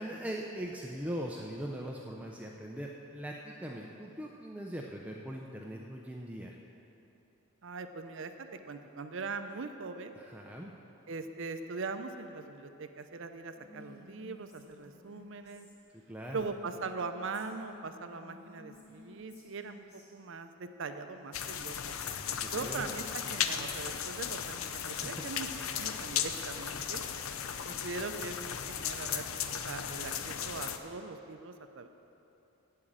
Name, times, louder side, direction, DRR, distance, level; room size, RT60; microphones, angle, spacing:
voice 1, 0.0-6.6 10.2-10.7 16.1-16.4 22.3-22.8 24.9-25.2, equal, 5° right, -1 dB, 0.5 m, -41 dB
voice 2, 7.6-10.1 11.1-15.7 16.3-21.9 22.5-25.5 25.8-27.0 27.6-31.9, right 4 dB, 55° right, 8 dB, 0.5 m, -41 dB
Female speech woman speaking, 13.6-17.0 17.3-20.0, left 1 dB, 50° left, 2.8 m, -55 dB
sound 1, 21.3-30.8, left 8 dB, 70° left, 0.6 m, -36 dB
8.9 x 7.6 x 8.6 m, 2.9 s
head